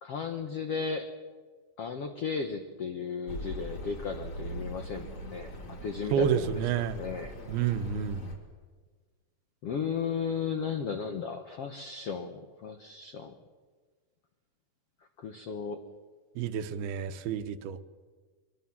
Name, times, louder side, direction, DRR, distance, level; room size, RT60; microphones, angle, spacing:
voice 1, 0.0-1.1 1.8-6.6 6.9-7.3 9.6-13.3 15.2-15.8, left 6 dB, 75° left, 6 dB, 1.4 m, -35 dB
Accelerating revving vroom, 3.3-8.4, right 1 dB, 35° left, 3.6 m, -41 dB
voice 2, 6.1-7.0 7.5-8.3 16.4-17.8, right 8 dB, 85° right, 10 dB, 2.9 m, -29 dB
23.0 x 20.5 x 7.3 m, 1.4 s
omnidirectional pair, 4.4 m